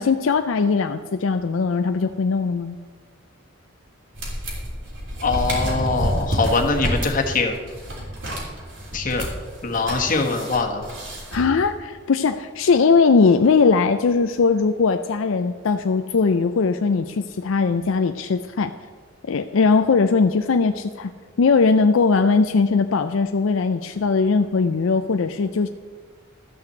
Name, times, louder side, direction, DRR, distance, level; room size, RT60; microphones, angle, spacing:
voice 1, 0.0-2.8 11.3-18.7 19.3-21.1 21.4-25.7, left 4 dB, 75° left, 8 dB, 0.5 m, -19 dB
sound 1, 4.1-11.7, equal, 60° right, 3.3 m, -29 dB
voice 2, 5.2-7.6 8.9-9.3 9.6-10.8, left 3 dB, 40° left, 2 dB, 1.4 m, -22 dB
13.0 x 5.8 x 7.8 m, 1.5 s
head